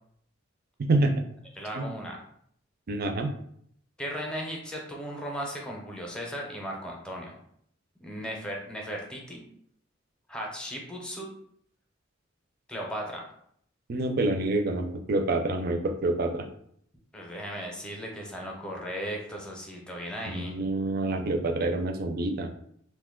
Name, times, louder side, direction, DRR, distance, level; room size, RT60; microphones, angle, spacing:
voice 1, 0.8-1.1 1.8-1.9 2.9-3.3 13.9-16.5 20.3-22.5, right 2 dB, 50° right, 5 dB, 0.4 m, -27 dB
voice 2, 1.6-2.2 4.0-7.4 8.0-9.5 10.3-11.3 12.7-13.2 17.1-20.5, equal, 5° left, 0 dB, 0.6 m, -36 dB
2.8 x 2.2 x 3.6 m, 0.67 s
head